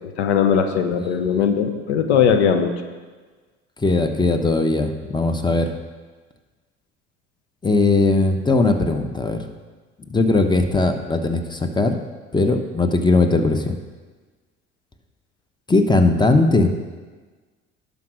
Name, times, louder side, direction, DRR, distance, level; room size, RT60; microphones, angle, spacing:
voice 1, 0.2-2.7, left 7 dB, 90° left, 7 dB, 0.8 m, -19 dB
voice 2, 3.8-5.7 7.6-9.5 10.1-12.0 12.3-13.8 15.7-16.7, left 3 dB, 15° left, 7 dB, 1.0 m, -19 dB
11.5 x 5.1 x 6.3 m, 1.4 s
hypercardioid pair, 65°, 32 cm